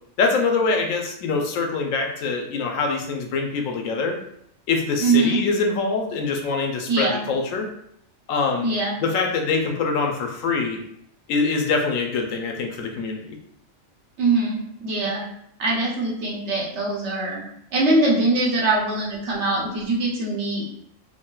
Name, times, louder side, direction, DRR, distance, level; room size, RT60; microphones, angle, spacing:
voice 1, 0.2-4.2 4.7-7.7 8.3-8.7 9.0-10.8 11.3-13.4, left 4 dB, 85° left, 2 dB, 1.0 m, -24 dB
voice 2, 5.0-5.4 6.9-7.2 8.6-9.0 14.2-15.2 15.6-17.4 17.7-20.6, right 2 dB, 65° right, -4 dB, 1.0 m, -22 dB
3.7 x 2.1 x 2.3 m, 0.72 s
omnidirectional pair, 1.3 m